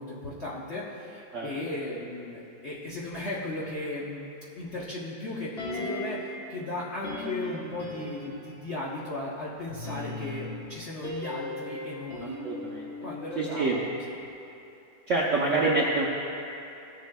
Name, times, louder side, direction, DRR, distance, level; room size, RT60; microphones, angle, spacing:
voice 1, 0.0-4.3 4.5-12.4 13.0-13.9, left 2 dB, 55° left, -6 dB, 0.7 m, -36 dB
sound 1, 5.6-6.4 7.0-8.7 9.7-13.9 14.2-14.3, left 2 dB, 35° left, 1.6 m, -38 dB
voice 2, 12.2-12.9 13.3-13.8 15.1-16.0, right 3 dB, 65° right, -4 dB, 0.8 m, -26 dB
15.0 x 7.1 x 2.2 m, 2.9 s
omnidirectional pair, 2.1 m